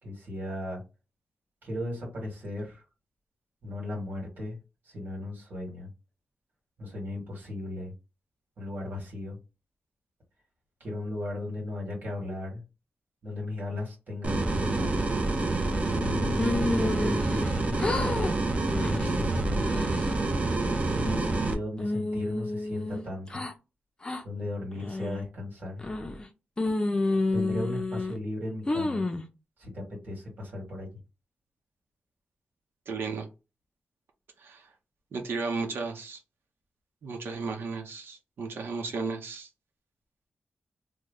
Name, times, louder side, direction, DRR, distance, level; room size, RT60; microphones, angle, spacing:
voice 1, 0.0-0.8 1.6-2.8 3.6-4.6 4.8-5.9 6.8-7.9 8.6-9.4 10.8-12.6 13.2-15.1 15.9-18.3 18.8-19.9 20.9-23.5 24.2-25.8 27.3-29.0 29.6-30.9, left 2 dB, 60° right, 1.9 m, -36 dB
sound 1, 14.2-21.5, right 2 dB, 35° right, 0.7 m, -27 dB
sound 2, 16.4-17.5 17.8-18.3 18.7-19.1 19.6-20.1 20.6-21.4 21.8-23.5 24.0-24.2 24.8-25.2 25.8-26.2 26.6-28.2 28.7-29.2, left 2 dB, 20° left, 0.5 m, -30 dB
voice 2, 32.9-33.3 34.4-34.7 35.1-36.2 37.0-39.5, right 4 dB, 85° right, 0.8 m, -34 dB
3.1 x 2.2 x 3.7 m
wide cardioid pair, 145°, 4 cm